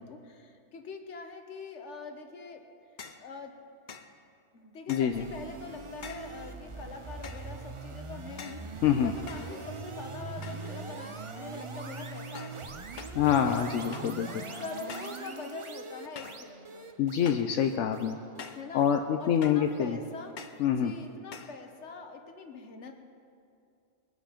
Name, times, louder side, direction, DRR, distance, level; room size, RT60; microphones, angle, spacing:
voice 1, 0.0-2.7 3.2-3.6 4.5-13.0 14.6-16.9 18.5-18.9 19.2-20.4 20.7-23.0, left 4 dB, 70° left, 5 dB, 1.4 m, -44 dB
sound 1, 3.0-3.3 3.9-4.2 4.9-5.2 6.0-6.4 7.2-7.6 8.4-8.7 9.3-9.9 10.4-10.8 11.1-11.6 12.3-12.6 13.0-13.2 13.9-14.2 14.9-15.2 16.1-16.5 17.2-17.6 18.4-18.7 19.4-19.7 20.4-20.7 21.3-21.6, left 5 dB, 45° left, 0.7 m, -46 dB
voice 2, 4.9-5.2 8.8-9.1 13.1-14.6 17.0-18.2 18.7-20.0 20.6-20.9, left 8 dB, 90° left, 5 dB, 1.0 m, -26 dB
sound 2, 5.1-20.3, right 4 dB, 35° right, 0.6 m, -42 dB
21.5 x 8.2 x 5.1 m, 2.4 s
omnidirectional pair, 1.2 m